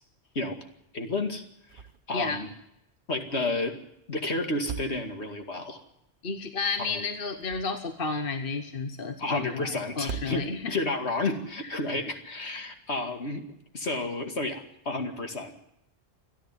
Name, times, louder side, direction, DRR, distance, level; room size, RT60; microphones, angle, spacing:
voice 1, 0.9-1.4 1.7-2.5 3.1-3.8 4.1-5.8 6.8-7.0 9.2-15.6, left 2 dB, 70° left, 5 dB, 2.5 m, -31 dB
sound 1, 1.7-2.2 2.5-2.6 4.4-5.5 7.2-8.1 9.9-10.9, right 6 dB, 50° right, 1.1 m, -40 dB
voice 2, 6.2-10.8, left 4 dB, 50° left, 8 dB, 1.3 m, -32 dB
28.0 x 10.5 x 9.6 m, 0.78 s
omnidirectional pair, 1.2 m